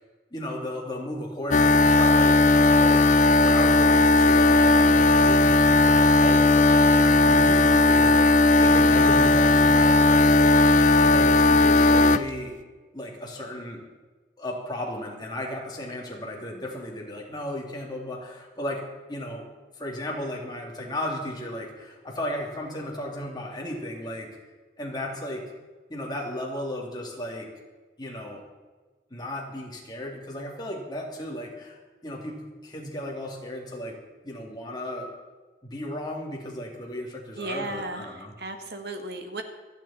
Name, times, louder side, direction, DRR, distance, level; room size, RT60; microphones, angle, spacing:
voice 1, 0.3-8.3 8.6-10.5 11.0-12.5 12.9-13.8 14.4-19.5 19.7-24.3 24.8-25.4 25.9-27.5 28.0-28.4 29.1-34.0 34.2-35.1 35.6-38.3, left 1 dB, 25° left, -1 dB, 2.8 m, -35 dB
sound 1, 1.5-12.2, left 2 dB, 45° left, 0.6 m, -17 dB
voice 2, 37.4-39.4, right 2 dB, 60° right, 5 dB, 1.7 m, -35 dB
27.5 x 9.9 x 4.3 m, 1.4 s
head